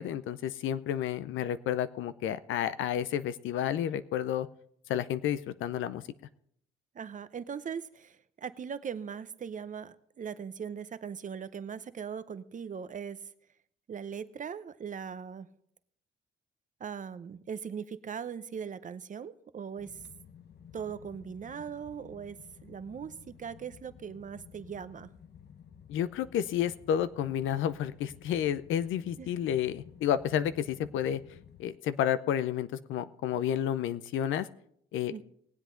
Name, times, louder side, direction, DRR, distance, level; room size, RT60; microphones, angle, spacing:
voice 1, 0.0-4.5 4.9-6.0 25.9-31.2 31.6-34.5 34.9-35.1, left 10 dB, 80° left, 0.6 m, -31 dB
voice 2, 6.9-13.3 13.9-15.5 16.8-19.9 20.7-22.4 22.6-25.1 29.2-29.3 35.1-35.2, right 7 dB, 40° right, 0.7 m, -40 dB
sound 1, 19.8-31.6, left 8 dB, 55° left, 1.0 m, -54 dB
20.0 x 8.1 x 3.8 m
cardioid pair, 90°, 20 cm